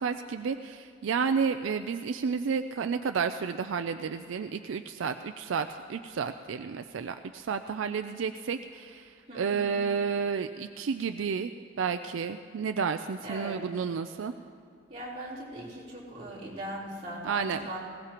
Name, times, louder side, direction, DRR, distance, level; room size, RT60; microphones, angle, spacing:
voice 1, 0.0-11.5 11.8-14.3 17.2-17.6, right 6 dB, 70° right, 8 dB, 0.4 m, -31 dB
voice 2, 9.3-9.8 13.2-13.6 14.9-17.8, right 1 dB, 30° right, -8 dB, 3.6 m, -39 dB
20.5 x 17.5 x 3.0 m, 2.4 s
head